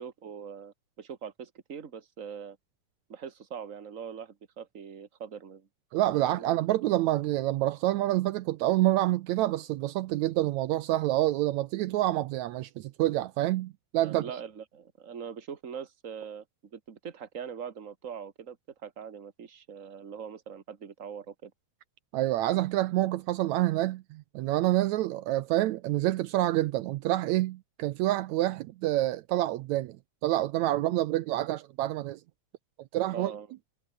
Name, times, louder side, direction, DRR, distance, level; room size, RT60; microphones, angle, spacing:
voice 1, 0.0-2.6 3.1-5.7 6.4-6.5 14.0-16.4 16.7-18.6 18.8-21.5 33.1-33.5, right 7 dB, 35° right, 1.6 m, -42 dB
voice 2, 5.9-14.3 22.1-30.0 30.2-32.2 32.9-33.3, right 15 dB, 75° right, 1.8 m, -27 dB
omnidirectional pair, 3.6 m